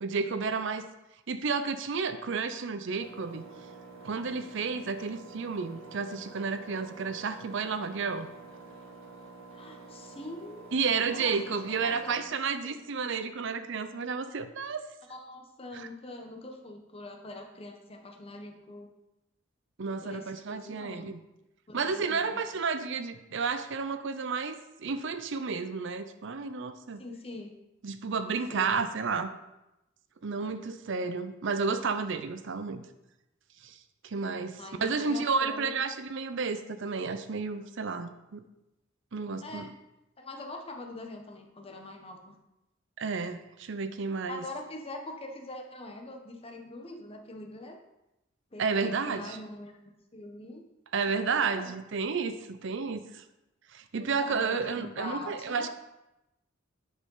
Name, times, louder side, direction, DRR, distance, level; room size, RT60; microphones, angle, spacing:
voice 1, 0.0-0.8 1.3-3.4 4.0-8.3 10.7-14.8 15.7-15.9 19.8-21.2 21.7-27.0 27.8-29.3 30.2-32.8 33.6-33.8 34.0-38.4 39.1-39.7 43.0-44.4 48.6-49.4 50.9-53.2 53.7-55.7, right 5 dB, 65° right, 11 dB, 0.6 m, -31 dB
Engine, 3.0-12.3, right 3 dB, 90° right, 1.7 m, -48 dB
voice 2, 9.5-10.7 11.1-12.3 12.6-12.8 15.1-18.9 20.0-21.1 21.7-22.4 27.0-27.5 28.5-28.9 34.6-35.8 39.4-39.7 40.2-42.4 44.3-47.8 48.5-49.8 50.1-50.7 51.1-51.7 54.0-55.7, left 2 dB, 30° left, 3 dB, 1.2 m, -43 dB
9.6 x 5.3 x 5.6 m, 0.93 s
head